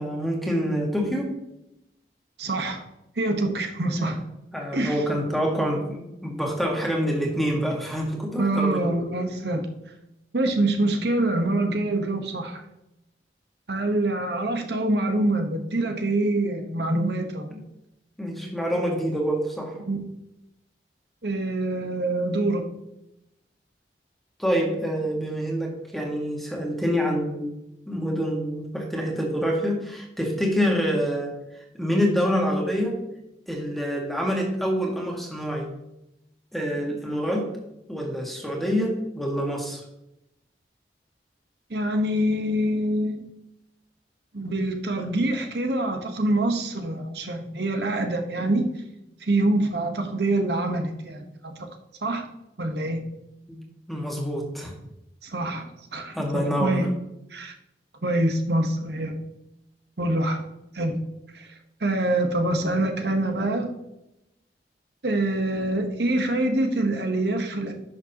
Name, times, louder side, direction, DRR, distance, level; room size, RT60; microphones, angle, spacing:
voice 1, 0.0-1.4 3.9-4.2 4.5-8.9 17.5-17.6 18.2-19.8 24.4-27.5 27.9-32.9 33.5-35.7 36.5-37.5 37.9-39.8 53.5-53.6 53.9-54.7 56.1-56.9, equal, ahead, 0 dB, 1.6 m, -26 dB
voice 2, 2.4-2.8 3.2-4.2 4.7-5.0 8.4-9.7 10.3-12.6 13.7-17.5 19.9-20.0 21.2-22.7 41.7-43.2 44.3-48.7 49.2-51.7 52.0-52.3 52.6-53.1 55.2-56.9 57.3-57.5 58.0-59.3 60.0-60.4 60.7-61.0 61.3-61.5 61.8-63.7 65.0-67.7, right 1 dB, 75° right, 5 dB, 1.1 m, -25 dB
11.0 x 6.3 x 2.9 m, 0.86 s
head